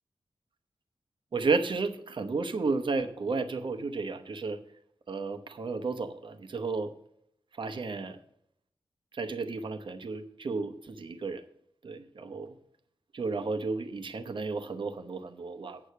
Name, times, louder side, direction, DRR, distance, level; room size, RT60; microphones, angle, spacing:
voice 1, 1.3-4.6 5.1-6.9 7.6-8.2 9.1-11.4 11.8-12.6 13.1-15.8, right 4 dB, 60° right, 8 dB, 1.0 m, -32 dB
8.7 x 6.6 x 6.8 m, 0.71 s
wide cardioid pair, 135°, 10 cm